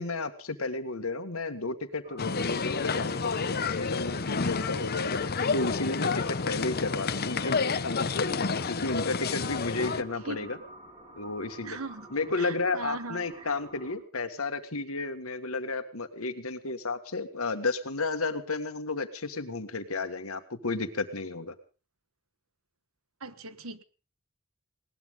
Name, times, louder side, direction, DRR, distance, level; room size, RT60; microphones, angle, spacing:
voice 1, 0.0-5.2 5.5-8.4 8.7-10.6 11.1-11.8 12.1-21.5, left 3 dB, 85° left, 8 dB, 1.8 m, -32 dB
sound 1, 2.0-14.0, right 1 dB, 25° right, 4.1 m, -50 dB
sound 2, 2.2-10.0, left 4 dB, 50° left, 0.9 m, -30 dB
voice 2, 11.6-12.1 12.4-13.5 23.2-23.8, right 3 dB, 85° right, 13 dB, 1.4 m, -39 dB
20.5 x 18.5 x 3.8 m, 0.35 s
head